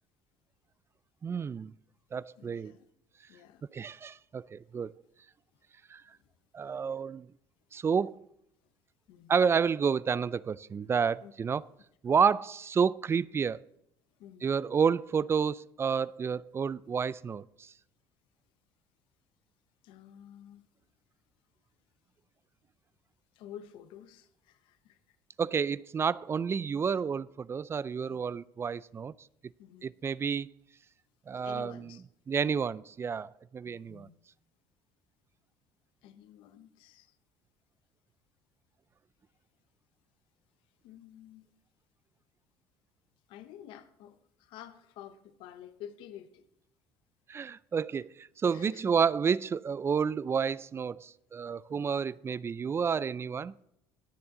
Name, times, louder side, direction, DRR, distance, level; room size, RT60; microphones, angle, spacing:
voice 1, 1.2-1.7 2.1-2.7 3.7-4.9 5.9-6.0 6.5-7.3 7.7-8.2 9.3-11.6 12.0-13.6 14.4-17.7 25.4-29.1 29.8-30.5 31.3-31.9 32.3-34.1 47.3-53.5, right 6 dB, 30° right, 0.3 m, -30 dB
voice 2, 2.4-2.8 3.3-3.6 9.1-9.3 11.2-11.3 14.2-14.5 19.8-20.7 23.3-25.2 28.1-28.2 29.6-29.9 31.4-32.0 33.7-34.2 36.0-37.1 40.8-41.5 43.3-46.5 48.5-48.9 51.7-52.0, left 10 dB, 75° left, 0.9 m, -50 dB
19.5 x 7.0 x 3.8 m
supercardioid pair, 90°, 9 cm